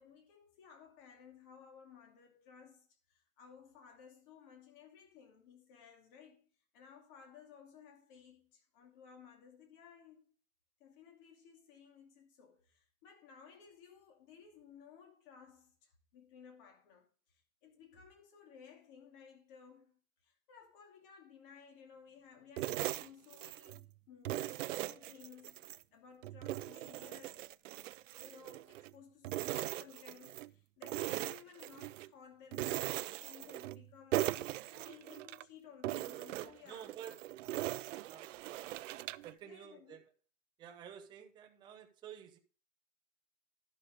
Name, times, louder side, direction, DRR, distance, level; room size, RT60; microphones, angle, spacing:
voice 1, 0.0-6.5 6.7-10.2 10.8-19.9 20.2-27.4 28.2-34.2 34.6-37.0 38.6-38.7 39.4-40.0, left 7 dB, 40° left, 2.6 m, -58 dB
sound 1, 22.6-23.8 24.3-25.8 26.2-28.9 29.2-30.5 30.8-32.1 32.5-33.8 34.1-35.4 35.8-39.3, right 15 dB, 60° right, 0.5 m, -40 dB
voice 2, 36.6-37.1 38.0-38.8 39.2-40.0 40.6-42.4, right 9 dB, 10° right, 0.6 m, -51 dB
12.0 x 6.5 x 5.0 m
supercardioid pair, 160°, 43 cm